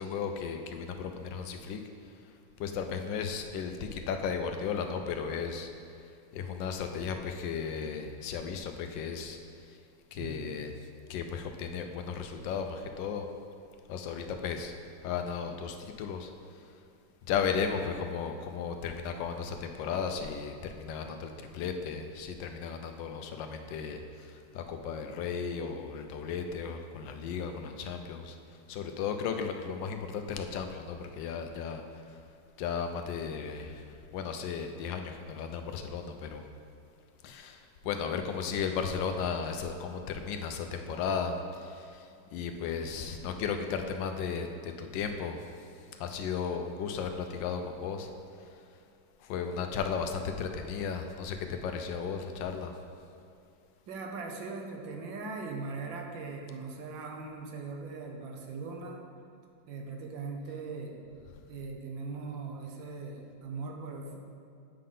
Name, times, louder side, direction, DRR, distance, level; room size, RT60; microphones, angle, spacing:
voice 1, 0.0-1.8 2.6-5.7 6.3-9.4 10.1-10.7 11.1-13.3 13.9-14.7 15.0-16.3 17.3-24.0 24.5-28.4 28.7-31.8 32.6-33.8 34.1-36.4 37.2-42.0 42.3-45.4 46.0-48.1 49.2-52.7, left 6 dB, 75° left, 5 dB, 1.2 m, -35 dB
voice 2, 10.2-10.5 53.9-59.1 59.7-61.0 61.5-64.2, right 4 dB, 75° right, 2 dB, 1.5 m, -40 dB
8.5 x 3.9 x 5.3 m, 2.5 s
omnidirectional pair, 2.1 m